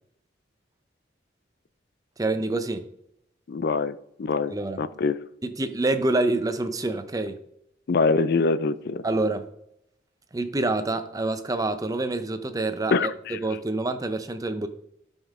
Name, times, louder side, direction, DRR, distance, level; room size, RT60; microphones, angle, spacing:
voice 1, 2.2-2.8 4.5-4.8 5.4-7.4 9.0-9.5 10.3-14.7, right 2 dB, 20° right, 0.6 m, -27 dB
voice 2, 3.5-5.2 7.9-9.0 12.9-13.4, left 4 dB, 55° left, 0.4 m, -24 dB
12.0 x 5.5 x 3.6 m
head